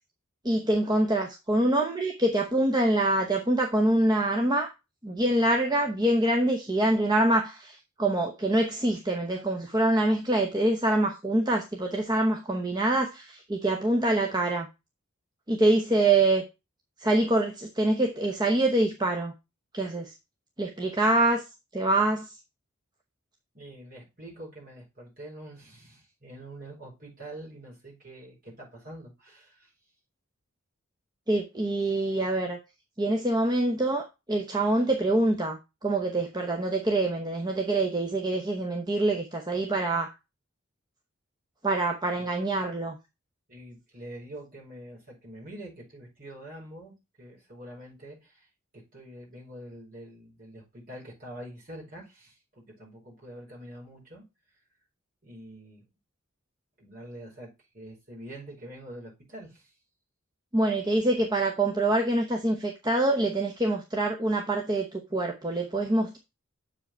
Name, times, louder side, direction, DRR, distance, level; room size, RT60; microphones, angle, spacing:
voice 1, 0.4-4.7 5.0-14.7 15.5-16.4 17.0-19.3 19.7-20.1 20.6-21.4 21.7-22.3 31.3-32.6 33.0-40.1 41.6-43.0 60.5-66.2, right 2 dB, 20° right, 0.8 m, -25 dB
voice 2, 23.5-29.7 42.2-42.3 43.5-48.5 48.7-54.2 55.2-55.8 56.8-59.7, right 1 dB, 40° right, 5.0 m, -45 dB
7.4 x 4.8 x 4.4 m
head